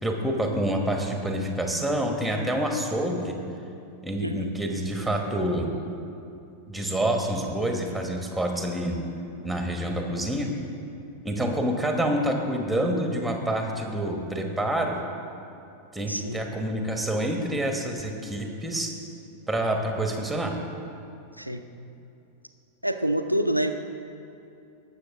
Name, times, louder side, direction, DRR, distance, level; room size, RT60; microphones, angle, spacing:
voice 1, 0.0-3.4 4.0-5.7 6.7-9.1 9.4-10.5 11.2-15.0 15.9-18.9 19.5-20.5, right 1 dB, ahead, 2 dB, 1.4 m, -27 dB
voice 2, 4.2-4.5 11.4-11.5 16.1-16.4 21.4-21.6 22.8-23.7, right 1 dB, 90° right, 7 dB, 0.6 m, -27 dB
19.5 x 6.6 x 3.6 m, 2.7 s
figure-of-eight pair, 90°, 0 cm